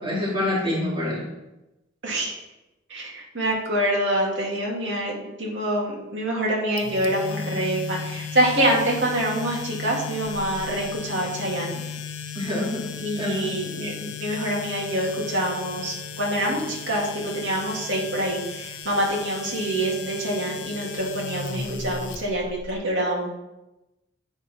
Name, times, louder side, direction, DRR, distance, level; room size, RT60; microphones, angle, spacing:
voice 1, 0.0-1.2 12.3-12.9 13.2-13.5, left 1 dB, 25° right, -7 dB, 2.9 m, -26 dB
voice 2, 2.0-2.4 2.9-5.1 5.4-11.8 13.0-23.3, right 1 dB, 70° right, -2 dB, 2.1 m, -26 dB
sound 1, 6.8-22.7, left 6 dB, 80° left, 0.7 m, -36 dB
8.6 x 5.3 x 4.2 m, 0.97 s
head